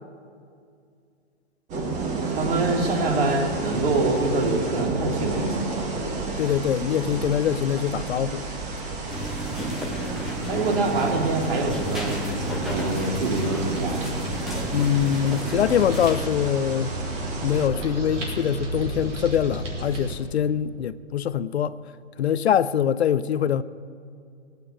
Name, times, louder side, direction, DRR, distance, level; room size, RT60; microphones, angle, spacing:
sound 1, 1.7-17.7, right 3 dB, 20° right, 1.9 m, -32 dB
voice 1, 2.3-5.9 10.5-12.2 12.7-14.0, right 2 dB, 50° right, 3.2 m, -25 dB
voice 2, 6.4-8.5 14.7-16.9 17.4-21.7 22.2-23.6, left 9 dB, 60° left, 0.6 m, -23 dB
sound 2, 9.1-16.2, right 1 dB, ahead, 0.4 m, -32 dB
sound 3, 11.6-20.1, right 1 dB, 75° right, 5.1 m, -33 dB
17.0 x 9.3 x 8.9 m
hypercardioid pair, 145°, 37 cm